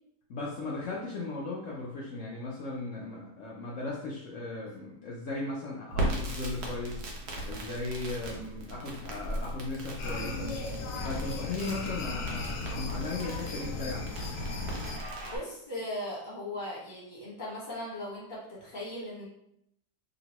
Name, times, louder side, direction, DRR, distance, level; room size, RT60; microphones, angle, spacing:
voice 1, 0.3-7.0 7.5-10.5 11.0-14.1, left 2 dB, 70° left, -4 dB, 0.7 m, -37 dB
Crackle, 5.9-15.4, right 1 dB, 65° right, 1.2 m, -37 dB
sound 1, 10.0-15.0, left 3 dB, 90° left, 1.3 m, -36 dB
voice 2, 15.2-19.3, left 1 dB, 30° left, -6 dB, 1.2 m, -38 dB
3.0 x 2.9 x 2.8 m, 0.75 s
omnidirectional pair, 1.9 m